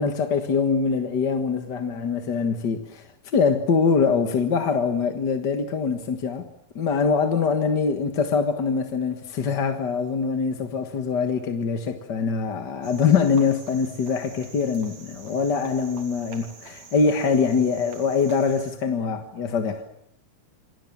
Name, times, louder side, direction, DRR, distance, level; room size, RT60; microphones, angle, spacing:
voice 1, 0.0-6.5 6.7-19.8, left 5 dB, 45° left, 1.6 m, -23 dB
Cricket, 12.8-18.8, right 5 dB, 60° right, 4.5 m, -46 dB
28.0 x 22.5 x 7.4 m
omnidirectional pair, 3.6 m